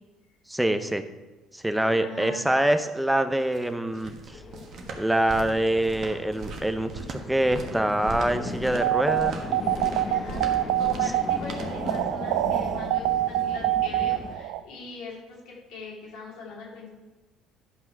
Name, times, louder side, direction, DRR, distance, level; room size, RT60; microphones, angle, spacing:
voice 1, 0.5-1.0 1.5-4.1 4.9-9.5, right 1 dB, 5° right, 9 dB, 0.8 m, -25 dB
voice 2, 1.7-2.4 10.1-16.9, left 3 dB, 70° left, -2 dB, 2.8 m, -41 dB
sound 1, 3.3-12.2, right 4 dB, 55° right, 1.4 m, -39 dB
sound 2, 4.3-14.4, left 4 dB, 35° left, 1.3 m, -38 dB
sound 3, 8.8-14.6, right 16 dB, 75° right, 0.3 m, -25 dB
11.0 x 5.6 x 4.6 m, 1.2 s
hypercardioid pair, 60°, 0 cm